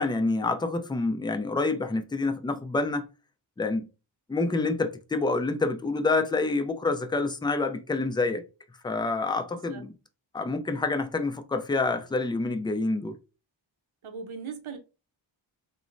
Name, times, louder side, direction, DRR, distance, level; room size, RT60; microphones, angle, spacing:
voice 1, 0.0-3.1 3.6-3.9 4.3-8.4 8.8-9.9 10.3-13.1, left 3 dB, 10° left, 0.3 m, -27 dB
voice 2, 9.5-9.8 14.0-14.8, right 5 dB, 90° right, 0.7 m, -39 dB
3.0 x 2.0 x 2.5 m
wide cardioid pair, 55°, 47 cm